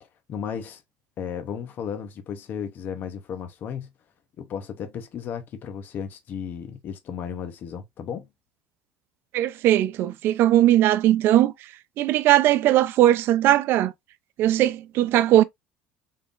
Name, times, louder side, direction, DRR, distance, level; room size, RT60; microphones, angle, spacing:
voice 1, 0.3-0.8 1.2-3.9 4.4-8.3, left 7 dB, 45° left, 0.7 m, -34 dB
voice 2, 9.3-11.5 12.0-13.9 14.4-15.4, right 13 dB, 60° right, 0.5 m, -19 dB
3.6 x 3.5 x 2.5 m
cardioid pair, 120°, 4 cm